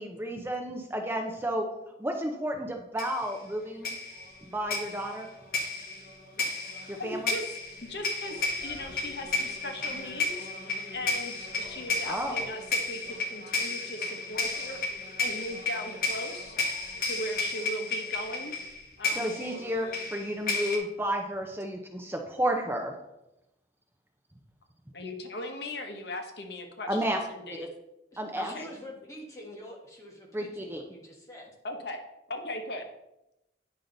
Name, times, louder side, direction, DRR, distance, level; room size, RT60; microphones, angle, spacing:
voice 1, 0.0-1.7 2.0-3.9 4.5-5.3 6.9-7.2 12.1-12.3 19.1-22.9 26.9-27.2 28.2-28.5 30.3-30.8, equal, 10° right, 3 dB, 0.6 m, -32 dB
sound 1, 3.0-3.3 3.8-20.8, left 3 dB, 50° left, 1.4 m, -33 dB
voice 2, 7.0-7.6 7.9-14.8 15.2-16.6 17.0-18.5 19.0-19.3 24.9-27.7 28.4-28.7 31.6-32.0 32.3-32.9, left 1 dB, 65° left, 4 dB, 1.0 m, -38 dB
voice 3, 28.1-31.5, equal, 15° left, -2 dB, 1.5 m, -46 dB
9.3 x 5.7 x 3.9 m, 0.90 s
head